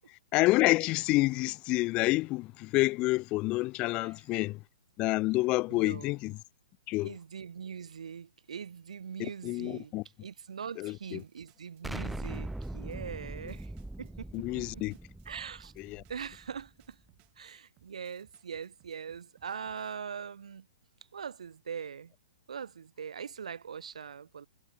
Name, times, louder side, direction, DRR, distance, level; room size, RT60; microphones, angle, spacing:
voice 1, 0.3-4.6 5.0-6.4 6.9-7.1 9.2-10.0 10.8-11.2 14.3-14.9 15.9-16.0, left 20 dB, 30° left, 0.5 m, -28 dB
voice 2, 3.9-4.2 5.7-6.1 7.0-9.9 10.2-13.7 14.0-14.8 15.3-15.7 16.1-17.0 17.4-20.7 21.1-22.1 22.5-24.5, right 7 dB, 80° right, 2.1 m, -42 dB
sound 1, 10.9-20.0, right 24 dB, 30° right, 5.6 m, -67 dB
Explosion, 11.8-16.7, right 1 dB, 5° right, 2.1 m, -41 dB
hypercardioid pair, 140°, 4 cm